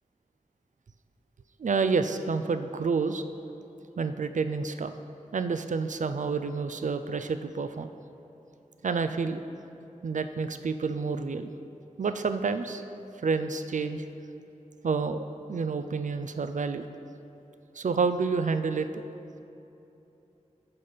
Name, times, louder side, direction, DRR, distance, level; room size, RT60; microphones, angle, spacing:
voice 1, 1.6-3.2 4.0-4.9 5.3-7.9 8.8-9.4 10.0-11.5 12.0-12.8 13.2-14.0 14.8-16.9 17.8-19.0, right 4 dB, 70° right, 10 dB, 0.4 m, -29 dB
11.0 x 4.1 x 5.1 m, 2.9 s
wide cardioid pair, 55°, 13 cm